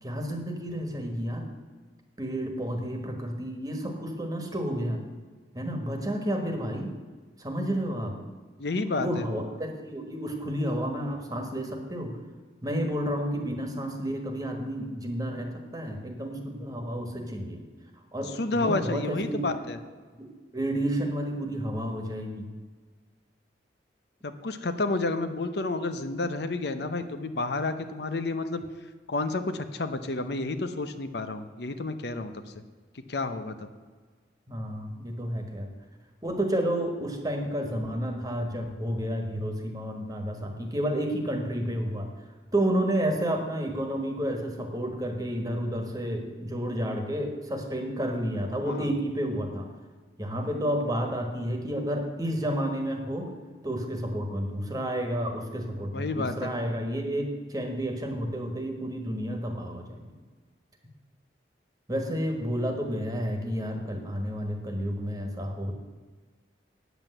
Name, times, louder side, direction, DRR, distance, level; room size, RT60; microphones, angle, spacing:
voice 1, 0.0-1.5 2.2-5.0 5.5-6.9 7.4-8.2 9.0-12.1 12.6-17.6 18.1-18.3 18.6-19.5 20.2-22.5 34.5-35.7 36.2-42.1 42.5-49.7 50.2-53.3 53.6-60.0 61.9-65.7, equal, 20° right, 4 dB, 1.5 m, -31 dB
voice 2, 8.6-9.2 18.4-19.8 24.2-28.6 29.1-32.3 33.1-33.7 48.6-48.9 55.9-56.5, left 3 dB, 65° left, 9 dB, 0.7 m, -30 dB
9.0 x 8.1 x 7.8 m, 1.5 s
head